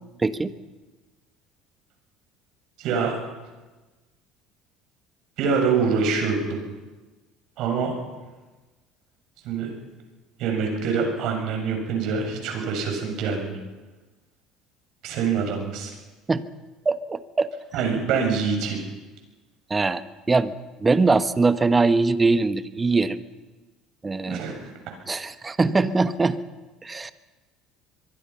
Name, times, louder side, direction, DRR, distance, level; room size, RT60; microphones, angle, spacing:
voice 1, 0.2-0.5 16.3-16.4 16.8-17.5 19.7-20.0 20.3-20.5 20.8-23.2 24.0-24.4 25.1-26.4 26.8-27.1, right 3 dB, 20° right, 12 dB, 1.4 m, -22 dB
voice 2, 2.8-3.2 5.4-6.7 7.6-7.9 9.4-9.7 10.4-13.6 15.0-15.9 17.7-18.8 24.3-24.7, right 5 dB, 65° right, 3 dB, 7.0 m, -25 dB
24.0 x 23.0 x 5.8 m, 1.2 s
hypercardioid pair, 70°, 0 cm